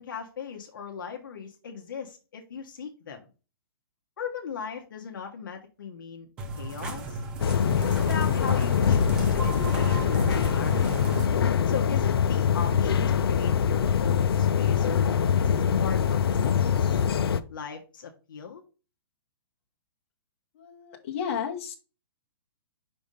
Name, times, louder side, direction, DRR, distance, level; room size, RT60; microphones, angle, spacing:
voice 1, 0.0-3.3 4.2-6.3 6.5-7.2 7.7-11.0 11.7-17.0 17.5-18.6, left 7 dB, 55° left, 2 dB, 1.1 m, -38 dB
sound 1, 6.4-11.3, right 2 dB, 5° right, 0.3 m, -36 dB
sound 2, 7.4-17.4, left 7 dB, 70° left, 0.6 m, -23 dB
voice 2, 20.5-21.7, left 7 dB, 30° left, -1 dB, 1.2 m, -33 dB
5.4 x 3.4 x 5.2 m, 0.33 s
hypercardioid pair, 175°, 13 cm